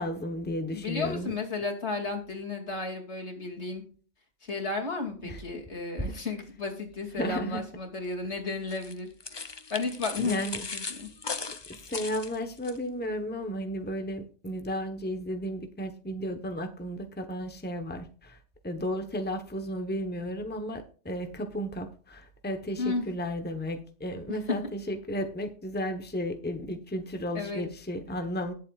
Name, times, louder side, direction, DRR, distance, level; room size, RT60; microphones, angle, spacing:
voice 1, 0.0-1.3 5.2-5.4 6.0-6.1 7.2-7.6 10.2-10.6 11.9-18.4 18.6-28.5, equal, 10° left, 6 dB, 1.1 m, -33 dB
voice 2, 0.7-3.8 4.4-9.1 9.3-11.1 22.8-23.1 24.3-24.6 27.3-27.7, left 3 dB, 70° left, 2 dB, 2.9 m, -33 dB
sound 1, 8.7-12.8, left 4 dB, 30° left, 0.6 m, -38 dB
19.5 x 7.5 x 2.5 m, 0.41 s
omnidirectional pair, 1.2 m